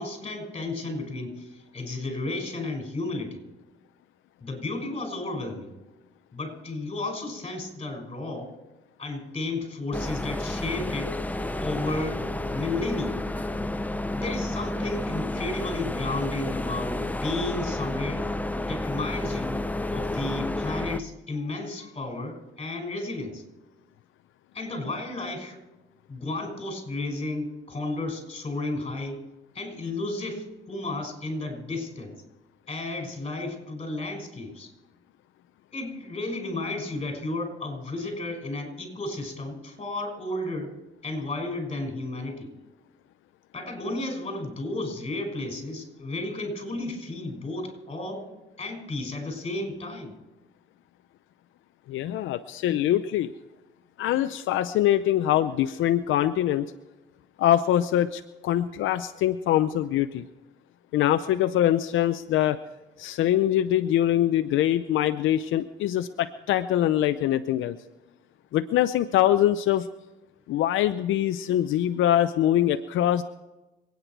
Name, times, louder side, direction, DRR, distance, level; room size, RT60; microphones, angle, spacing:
voice 1, 0.0-3.4 4.4-5.7 6.3-8.5 9.0-11.1 11.6-12.2 12.5-13.2 14.1-18.3 18.6-19.6 19.9-23.4 24.5-25.6 26.1-29.2 29.5-32.2 32.7-34.7 35.7-40.7 41.0-42.5 43.5-48.2 48.6-50.1, left 2 dB, 30° left, 3 dB, 5.9 m, -33 dB
sound 1, 9.9-21.0, left 1 dB, 10° left, 0.7 m, -31 dB
voice 2, 51.9-53.3 54.0-56.7 57.4-60.3 60.9-62.6 63.0-67.8 68.5-69.9 70.5-73.2, left 12 dB, 80° left, 10 dB, 0.6 m, -23 dB
26.0 x 9.6 x 4.6 m, 1.1 s
cardioid pair, 90°, 20 cm